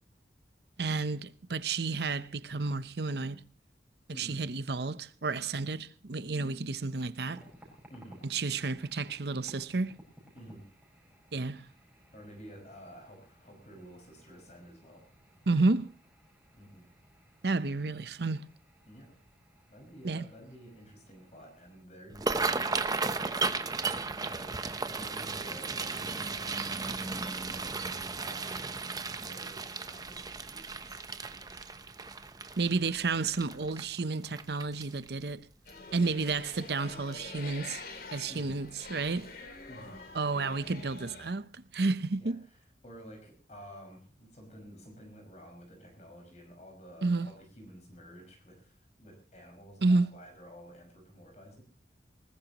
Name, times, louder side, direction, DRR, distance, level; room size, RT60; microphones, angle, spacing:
voice 1, 0.8-3.4 4.1-7.4 8.2-10.0 11.3-11.6 15.5-15.9 17.4-18.4 20.0-20.2 32.6-35.5 35.9-37.8 38.1-39.3 40.1-42.4 47.0-47.3 49.8-50.1, right 3 dB, 65° right, 0.8 m, -31 dB
voice 2, 4.1-4.4 5.5-5.6 7.9-8.2 10.3-10.7 11.6-11.7 12.1-15.1 16.6-16.9 18.9-19.2 19.7-27.9 28.2-28.7 29.2-32.0 38.3-38.6 39.7-40.0 42.2-51.6, equal, 40° left, 5.7 m, -51 dB
sound 1, 7.2-21.9, equal, 5° right, 5.6 m, -60 dB
sound 2, 22.1-35.2 35.7-36.0 36.3-36.7 37.1-37.3 38.5-38.7 39.0-39.2 39.6-39.7, right 4 dB, 20° right, 0.9 m, -35 dB
sound 3, 35.7-41.3, left 3 dB, 55° left, 3.1 m, -46 dB
20.5 x 19.5 x 3.0 m
head